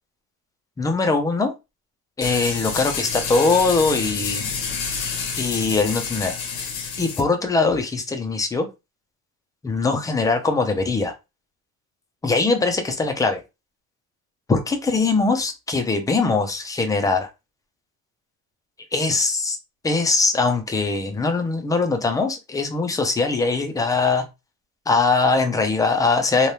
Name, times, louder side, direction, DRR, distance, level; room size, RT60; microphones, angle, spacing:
voice 1, 0.8-1.5 2.2-4.5 5.4-6.4 7.0-8.7 9.6-11.1 12.2-13.4 14.5-17.3 18.9-19.6 19.8-24.3 24.9-26.5, left 3 dB, 10° left, 0.5 m, -21 dB
sound 1, 2.2-7.2, left 5 dB, 80° left, 0.9 m, -28 dB
3.3 x 2.2 x 2.7 m
cardioid pair, 140°, 29 cm